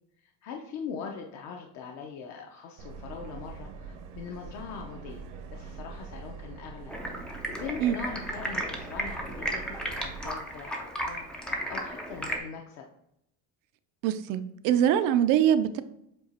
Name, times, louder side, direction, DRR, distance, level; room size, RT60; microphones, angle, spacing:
voice 1, 0.2-6.9 7.5-12.8, left 6 dB, 40° left, 1 dB, 0.6 m, -41 dB
Subway metro underground, 2.8-10.3, right 5 dB, 70° right, 1.0 m, -44 dB
Stream, 6.9-12.4, equal, ahead, 0.4 m, -34 dB
voice 2, 14.0-15.8, right 10 dB, 50° right, 11 dB, 0.5 m, -23 dB
7.7 x 2.9 x 4.2 m, 0.78 s
cardioid pair, 170°, 41 cm